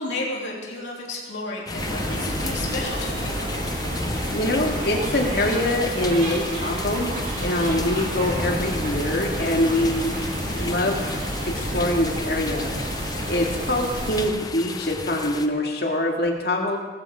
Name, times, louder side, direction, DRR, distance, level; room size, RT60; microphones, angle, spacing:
voice 1, 0.0-3.4, left 2 dB, 75° left, -3 dB, 3.2 m, -32 dB
sound 1, 1.7-15.5, left 3 dB, 20° left, 0.7 m, -33 dB
sound 2, 1.8-14.3, right 1 dB, 40° right, 3.2 m, -30 dB
voice 2, 4.3-7.1 7.4-10.1 10.5-11.1 11.5-12.7 13.3-16.8, left 1 dB, 55° left, 0 dB, 2.1 m, -24 dB
19.0 x 14.0 x 3.7 m, 1.3 s
head